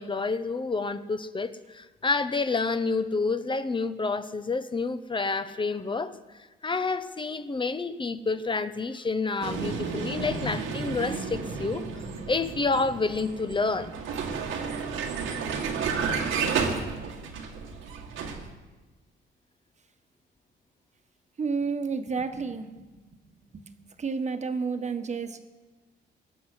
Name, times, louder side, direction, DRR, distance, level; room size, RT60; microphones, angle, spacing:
voice 1, 0.0-6.2 6.6-11.9 12.3-13.9, left 3 dB, 25° left, 11 dB, 0.8 m, -29 dB
Vehicle, 9.4-18.5, right 5 dB, 90° right, 1.9 m, -32 dB
voice 2, 21.4-22.9 23.3-23.6 24.0-25.4, right 5 dB, 35° right, 7 dB, 1.4 m, -31 dB
22.5 x 7.8 x 6.2 m, 1.2 s
cardioid pair, 90°, 20 cm